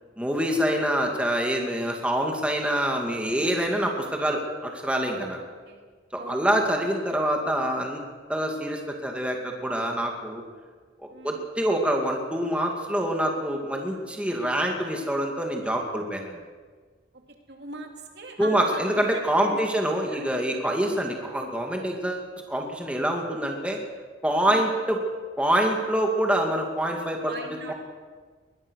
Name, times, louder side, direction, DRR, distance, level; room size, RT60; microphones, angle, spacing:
voice 1, 0.2-5.4 6.2-8.0 8.3-10.4 11.2-16.4 18.4-23.8 24.2-25.0 25.4-27.3 27.7-27.8, right 1 dB, 5° right, 1 dB, 2.5 m, -26 dB
voice 2, 5.4-5.8 6.2-6.4 11.1-11.5 14.3-14.4 17.5-19.6 20.0-20.2 24.4-24.7 27.2-27.7, right 2 dB, 60° right, 2 dB, 3.3 m, -40 dB
22.0 x 21.0 x 6.6 m, 1.5 s
head